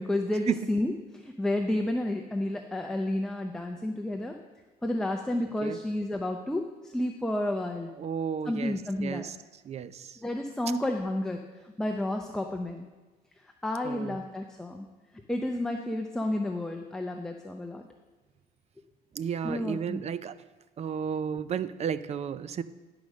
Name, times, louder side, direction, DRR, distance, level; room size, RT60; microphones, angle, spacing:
voice 1, 0.0-4.4 4.8-7.9 8.5-9.3 10.2-11.4 11.8-12.9 13.6-14.9 15.3-17.8 19.4-20.0, left 1 dB, 5° left, 3 dB, 0.6 m, -31 dB
voice 2, 7.9-9.4 9.6-10.2 13.8-14.2 19.1-20.4 20.8-22.6, right 7 dB, 40° right, 14 dB, 0.5 m, -33 dB
11.0 x 4.9 x 6.4 m, 1.2 s
cardioid pair, 110°, 17 cm